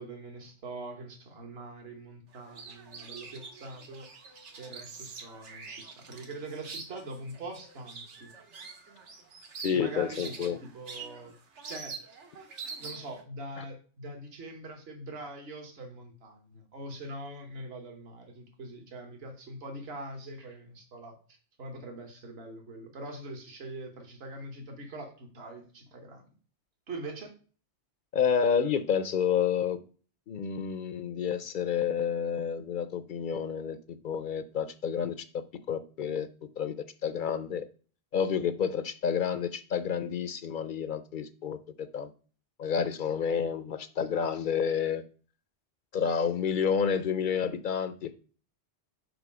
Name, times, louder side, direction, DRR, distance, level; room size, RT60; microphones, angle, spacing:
voice 1, 0.0-8.3 9.7-11.3 11.7-12.2 12.8-26.2 26.9-27.3, right 2 dB, 60° right, 3 dB, 1.5 m, -43 dB
sound 1, 2.3-13.2, right 4 dB, 85° right, 1.4 m, -45 dB
voice 2, 9.6-10.6 13.6-13.7 28.1-29.8 30.3-33.8 34.0-36.3 36.6-36.7 37.0-37.7 38.1-42.1 42.6-45.0 45.9-48.1, left 7 dB, 55° left, 12 dB, 0.6 m, -29 dB
5.1 x 4.4 x 6.0 m, 0.39 s
omnidirectional pair, 1.2 m